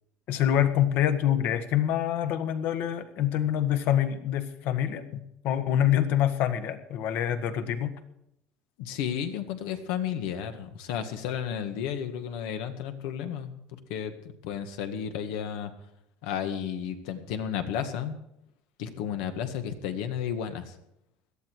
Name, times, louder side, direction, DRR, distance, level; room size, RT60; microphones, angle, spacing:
voice 1, 0.3-8.0, left 10 dB, 60° left, 10 dB, 1.5 m, -26 dB
voice 2, 8.8-13.5 13.9-14.1 14.4-15.7 16.2-18.2 18.8-20.7, left 8 dB, 85° left, 7 dB, 1.8 m, -32 dB
17.5 x 12.5 x 4.7 m, 0.79 s
cardioid pair, 140°, 4 cm